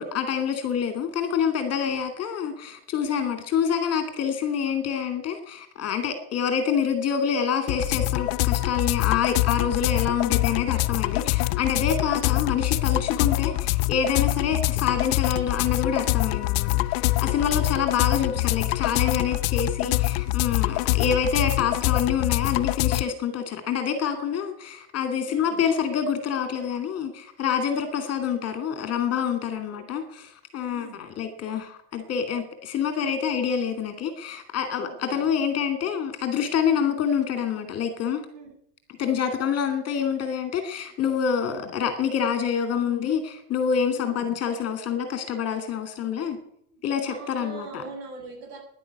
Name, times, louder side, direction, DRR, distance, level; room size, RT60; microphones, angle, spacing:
voice 1, 0.0-38.2 39.0-46.4 46.8-47.8, left 7 dB, 30° left, 7 dB, 2.7 m, -27 dB
sound 1, 7.7-23.0, left 19 dB, 55° left, 0.6 m, -25 dB
voice 2, 12.0-12.5 17.1-17.7 19.2-19.5 25.2-25.7 29.4-29.8 30.7-31.0 34.8-35.3 38.3-38.5 40.8-40.9 41.4-41.7 42.9-43.1 43.9-44.3 46.7-48.6, right 3 dB, 60° right, 2 dB, 7.4 m, -43 dB
11.5 x 10.5 x 9.4 m, 0.70 s
supercardioid pair, 135°, 48 cm